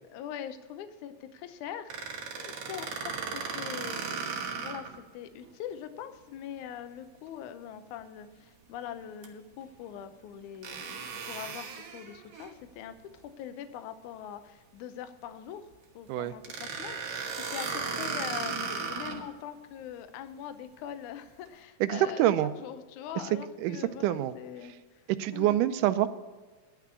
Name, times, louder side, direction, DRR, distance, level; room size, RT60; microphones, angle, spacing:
voice 1, 0.1-1.9 2.4-4.3 4.6-15.7 16.0-25.0 25.3-25.6, left 9 dB, 75° left, 10 dB, 2.1 m, -42 dB
sound 1, 1.9-5.0 5.4-5.5 9.2-9.3 10.6-12.5 16.4-19.3, right 5 dB, 60° right, 1.9 m, -36 dB
voice 2, 21.8-22.5 23.6-24.3 25.2-26.1, right 13 dB, 80° right, 12 dB, 2.1 m, -26 dB
11.0 x 5.9 x 8.1 m, 1.3 s
omnidirectional pair, 3.8 m